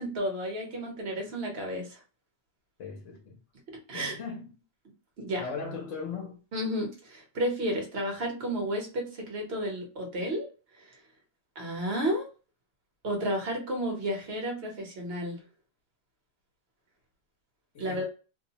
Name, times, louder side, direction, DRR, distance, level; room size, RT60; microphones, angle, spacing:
voice 1, 0.0-2.0 3.7-4.2 5.2-5.5 6.5-10.5 10.9-11.0 11.5-12.3 13.0-15.4 17.8-18.1, equal, 50° right, 1.1 m, -32 dB
voice 2, 2.8-3.4 3.9-4.5 5.4-6.4 17.7-18.1, left 4 dB, 65° left, 1.0 m, -38 dB
2.7 x 2.1 x 2.8 m
omnidirectional pair, 1.4 m